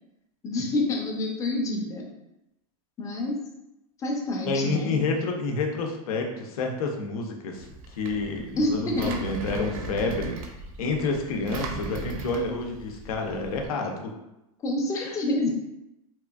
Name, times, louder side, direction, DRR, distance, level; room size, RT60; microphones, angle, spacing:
voice 1, 0.4-2.1 3.0-3.4 4.0-5.0 8.6-9.1 14.6-15.5, left 1 dB, 15° left, 0 dB, 0.5 m, -27 dB
voice 2, 4.5-10.4 10.8-14.1 15.0-15.2, left 3 dB, 85° left, 2 dB, 0.5 m, -29 dB
Engine, 7.6-13.7, right 3 dB, 75° right, 0.4 m, -37 dB
2.9 x 2.4 x 2.3 m, 0.91 s
supercardioid pair, 135°, 18 cm